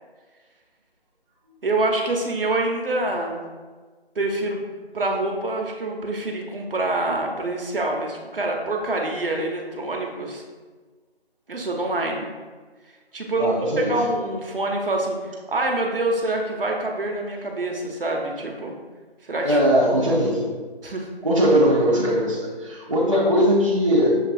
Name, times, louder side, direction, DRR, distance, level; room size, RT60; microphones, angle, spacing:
voice 1, 1.6-3.4 4.1-4.6 4.9-10.4 11.5-12.3 13.1-18.7 19.2-19.6 20.1-20.2 20.8-21.1, right 2 dB, 60° right, 1 dB, 0.8 m, -26 dB
voice 2, 13.4-13.9 19.4-20.5 21.2-24.2, equal, 30° right, -7 dB, 0.5 m, -20 dB
6.6 x 3.2 x 2.4 m, 1.4 s
figure-of-eight pair, 160°, 32 cm